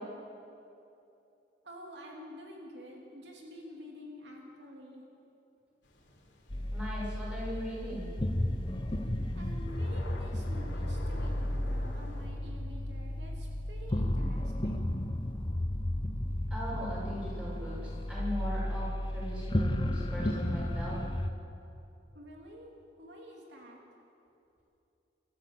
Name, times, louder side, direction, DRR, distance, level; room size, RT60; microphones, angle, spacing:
voice 1, 1.6-5.0 9.3-14.9 22.1-22.7 23.0-23.8, equal, 75° right, -1 dB, 3.1 m, -49 dB
sound 1, 5.8-12.3, left 1 dB, 90° left, 3.6 m, -51 dB
sound 2, 6.5-21.3, left 1 dB, 25° left, 0.9 m, -33 dB
voice 2, 6.7-8.1 16.5-17.7 18.1-18.9 19.1-21.0, equal, 5° right, -6 dB, 6.6 m, -39 dB
25.0 x 14.0 x 7.9 m, 2.7 s
head